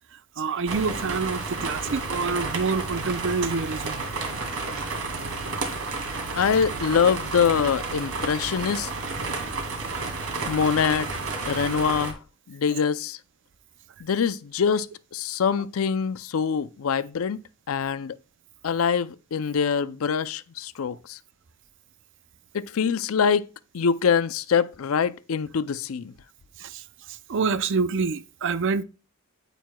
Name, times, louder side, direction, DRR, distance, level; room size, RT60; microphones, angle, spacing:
voice 1, 0.4-4.0 5.2-5.3 26.6-26.8 27.3-28.8, right 4 dB, 60° right, 0.5 m, -27 dB
sound 1, 0.7-12.1, right 3 dB, 90° right, 2.0 m, -31 dB
voice 2, 6.4-8.9 10.5-12.2 12.5-13.2 14.0-14.9 15.1-17.4 17.7-18.2 18.6-21.2 22.5-23.5 23.7-26.1, left 6 dB, 75° left, 0.5 m, -24 dB
9.3 x 9.0 x 2.2 m
head